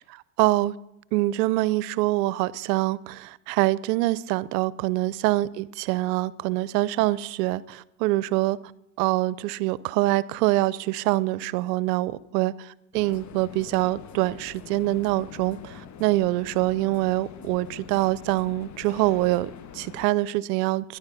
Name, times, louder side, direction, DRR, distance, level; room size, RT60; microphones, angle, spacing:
voice 1, 0.1-0.8 1.1-8.6 9.0-21.0, right 17 dB, 80° right, 20 dB, 0.7 m, -25 dB
sound 1, 12.9-20.1, left 7 dB, 35° left, 1.0 m, -44 dB
13.0 x 10.5 x 5.7 m, 0.87 s
supercardioid pair, 90°, 48 cm